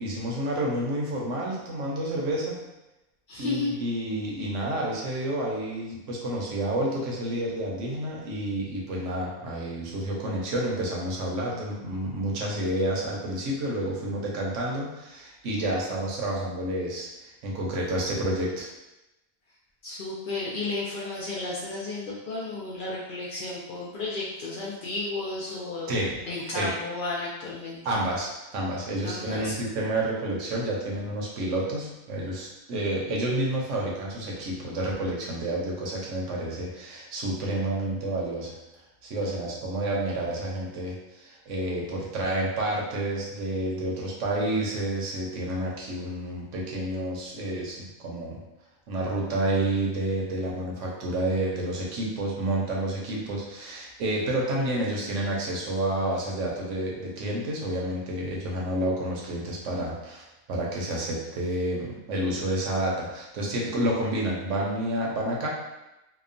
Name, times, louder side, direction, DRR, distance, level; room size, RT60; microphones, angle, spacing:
voice 1, 0.0-2.6 3.4-18.7 25.9-26.2 26.5-26.7 27.8-38.6 39.0-48.4 48.9-65.5, right 1 dB, 70° right, -3 dB, 0.9 m, -29 dB
voice 2, 3.3-3.7 19.8-28.0 29.0-29.6, left 3 dB, 85° left, -5 dB, 0.4 m, -33 dB
2.8 x 2.1 x 2.5 m, 0.97 s
omnidirectional pair, 1.4 m